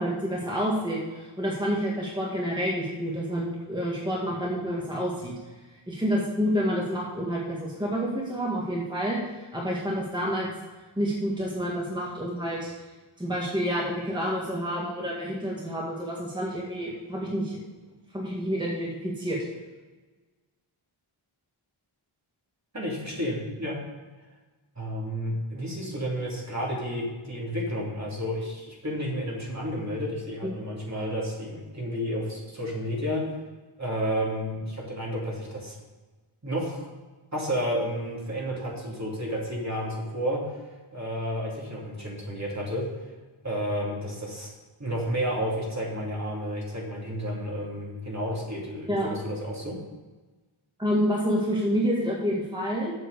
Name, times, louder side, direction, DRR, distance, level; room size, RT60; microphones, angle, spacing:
voice 1, 0.0-5.3 5.9-9.2 9.5-10.5 11.0-12.7 13.2-17.6 18.1-19.4 30.4-30.5 48.9-49.1 50.8-52.9, equal, 10° right, -4 dB, 1.9 m, -28 dB
voice 2, 22.7-23.8 24.8-33.2 33.8-35.7 36.4-36.9 37.3-40.6 40.9-42.8 43.4-44.5 44.8-49.8, equal, 35° right, -3 dB, 2.7 m, -31 dB
7.8 x 6.1 x 6.9 m, 1.3 s
wide cardioid pair, 65°, 50 cm